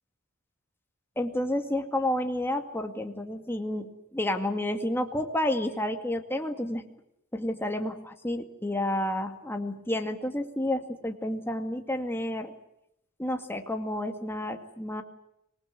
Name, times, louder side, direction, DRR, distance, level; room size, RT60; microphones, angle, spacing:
voice 1, 1.2-6.8 7.3-12.5 13.2-15.0, left 1 dB, 10° left, 5 dB, 2.1 m, -30 dB
25.5 x 19.5 x 8.2 m, 0.79 s
head